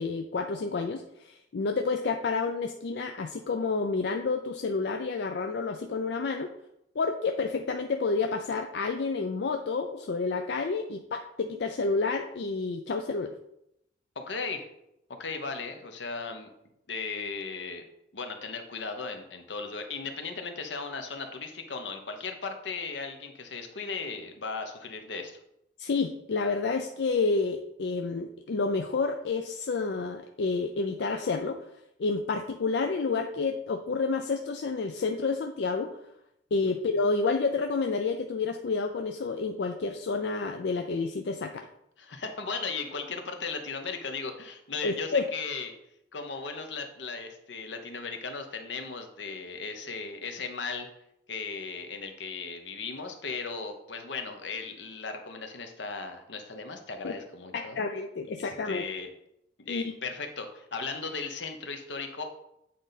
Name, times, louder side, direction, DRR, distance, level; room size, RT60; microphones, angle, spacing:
voice 1, 0.0-6.5 7.0-13.3 25.8-31.6 32.0-36.0 36.5-41.7 44.8-45.2 57.0-57.1 57.5-58.9 59.7-59.9, left 4 dB, 65° left, 5 dB, 0.4 m, -29 dB
voice 2, 14.2-14.7 15.2-16.5 16.9-17.8 18.1-25.4 36.7-36.8 42.0-45.8 46.1-50.9 51.3-57.8 58.4-59.1 59.6-62.2, left 4 dB, 85° left, 6 dB, 1.0 m, -37 dB
8.4 x 3.9 x 4.0 m, 0.81 s
head